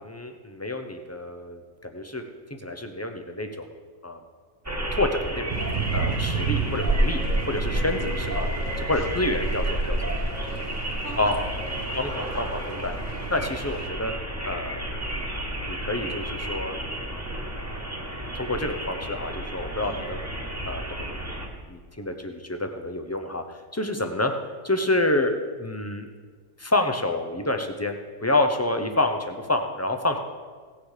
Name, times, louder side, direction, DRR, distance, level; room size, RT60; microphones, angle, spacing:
voice 1, 0.0-2.2 2.6-3.7 4.0-4.2 4.9-5.5 5.9-7.2 7.5-8.5 8.8-10.1 11.2-11.4 11.9-12.9 13.3-14.1 14.4-15.3 15.6-17.1 18.3-20.2 20.6-24.3 24.6-25.3 25.6-26.1 26.6-30.2, left 2 dB, 20° left, 5 dB, 0.4 m, -28 dB
sound 1, 4.6-21.5, right 1 dB, 10° right, 1.2 m, -30 dB
Thunder / Rain, 5.5-13.9, right 6 dB, 70° right, 1.3 m, -34 dB
voice 2, 8.0-8.3 8.9-9.6 10.5-12.4 12.8-13.5 19.8-20.0 24.0-24.2, equal, 55° left, -3 dB, 3.3 m, -45 dB
17.0 x 6.7 x 4.9 m, 1.5 s
omnidirectional pair, 1.5 m